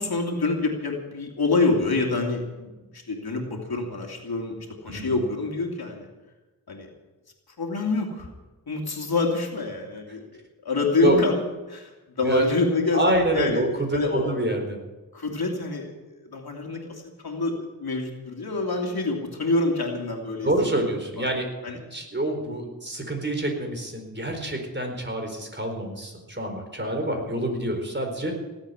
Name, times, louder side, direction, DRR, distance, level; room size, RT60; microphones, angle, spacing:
voice 1, 0.0-6.1 6.7-6.9 7.6-8.3 8.7-13.6 13.9-14.3 15.1-20.5 21.2-21.3 21.6-21.8, left 3 dB, 80° left, 1 dB, 2.9 m, -27 dB
voice 2, 4.9-5.2 11.0-11.2 12.2-12.4 12.9-14.8 20.4-28.3, right 1 dB, 30° right, 3 dB, 4.4 m, -27 dB
17.5 x 8.1 x 9.9 m, 1.2 s
wide cardioid pair, 55°, 37 cm